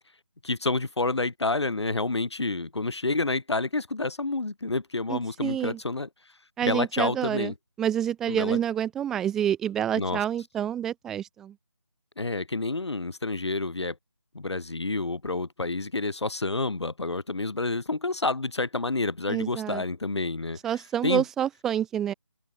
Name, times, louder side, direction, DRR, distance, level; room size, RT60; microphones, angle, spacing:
voice 1, 0.4-6.1 6.6-7.5 8.3-8.6 9.9-10.2 12.2-13.9 14.3-20.6 21.0-21.2, left 3 dB, 80° left, 1.4 m, -29 dB
voice 2, 5.1-5.8 6.6-7.5 7.8-11.5 19.3-19.8 20.6-22.1, right 10 dB, 5° right, 0.8 m, -28 dB
open air
figure-of-eight pair, 170°, 14 cm